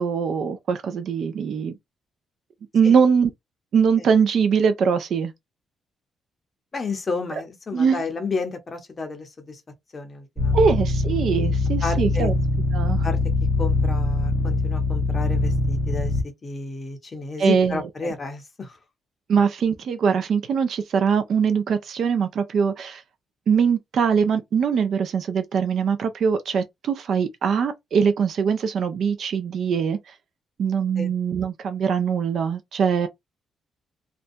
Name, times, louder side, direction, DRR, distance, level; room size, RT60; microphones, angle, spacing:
voice 1, 0.0-1.8 2.7-3.3 3.7-5.3 7.7-8.0 10.5-12.3 12.7-13.1 17.4-18.1 19.3-23.0 23.5-30.0 30.6-33.1, right 6 dB, 55° right, 0.4 m, -22 dB
voice 2, 6.7-9.6 9.9-10.6 11.8-12.3 13.0-13.2 13.6-16.1 16.4-18.7 31.0-31.1, left 4 dB, 25° left, 0.6 m, -31 dB
sound 1, 10.4-16.2, left 2 dB, 40° right, 1.0 m, -23 dB
2.5 x 2.2 x 2.5 m
cardioid pair, 155°, 0 cm